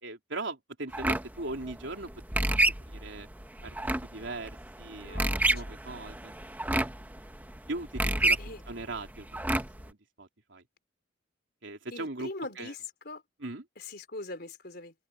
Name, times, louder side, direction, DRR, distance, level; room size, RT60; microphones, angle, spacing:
voice 1, 0.0-2.1 2.9-3.3 3.6-4.5 4.8-6.3 7.7-9.3 9.8-10.6 11.6-12.3 12.6-12.7 13.4-13.6, right 2 dB, 70° right, 3.6 m, -39 dB
sound 1, 0.9-9.9, right 1 dB, 10° right, 1.0 m, -30 dB
voice 2, 5.0-5.8 8.4-8.6 11.9-13.2 13.8-14.9, left 2 dB, 55° left, 4.0 m, -42 dB
head